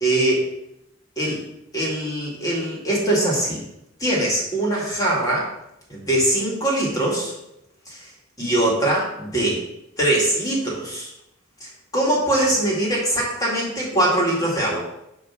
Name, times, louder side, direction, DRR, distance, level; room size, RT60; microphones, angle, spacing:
voice 1, 0.0-0.5 1.2-1.4 1.7-3.6 4.0-5.5 5.9-7.3 7.9-8.1 8.4-9.6 10.0-11.1 11.6-14.8, right 1 dB, 15° left, -4 dB, 2.1 m, -22 dB
9.2 x 3.1 x 5.9 m, 0.83 s
head